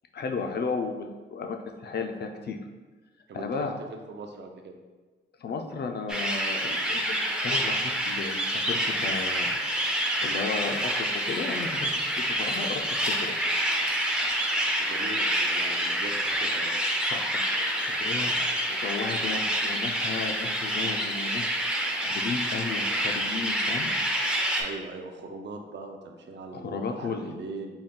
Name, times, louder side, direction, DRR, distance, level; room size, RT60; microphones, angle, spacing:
voice 1, 0.1-2.6 3.3-3.7 5.4-9.6 10.2-13.4 17.1-17.4 17.8-23.9 26.5-27.3, left 4 dB, 55° left, 5 dB, 0.4 m, -34 dB
voice 2, 3.3-4.8 14.8-16.7 24.6-27.8, right 3 dB, 60° right, 3 dB, 0.5 m, -40 dB
sound 1, 6.1-24.6, equal, 5° right, 0.4 m, -27 dB
3.9 x 2.2 x 3.6 m, 1.3 s
wide cardioid pair, 95°, 20 cm